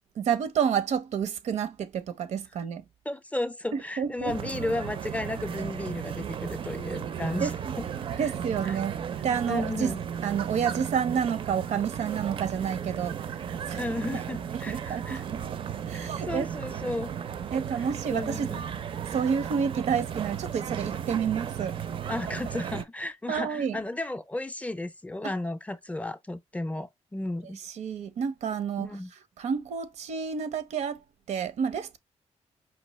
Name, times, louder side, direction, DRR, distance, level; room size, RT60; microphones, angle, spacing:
voice 1, 0.2-2.8 3.7-4.3 7.4-7.7 8.2-9.0 9.2-9.9 10.2-14.2 14.5-15.6 15.9-16.5 17.5-18.6 19.1-21.8 23.3-23.8 25.2-25.3 27.7-29.0 29.4-31.0 31.3-32.0, right 7 dB, 85° right, 0.8 m, -29 dB
voice 2, 3.1-7.5 7.8-7.9 8.7-8.8 9.5-10.0 13.8-15.2 15.9-17.1 18.1-18.6 22.1-27.6 28.8-29.1, left 2 dB, 10° left, 0.4 m, -33 dB
sound 1, 4.3-22.8, right 8 dB, 50° right, 0.5 m, -35 dB
5.2 x 2.8 x 3.1 m
wide cardioid pair, 150°, 12 cm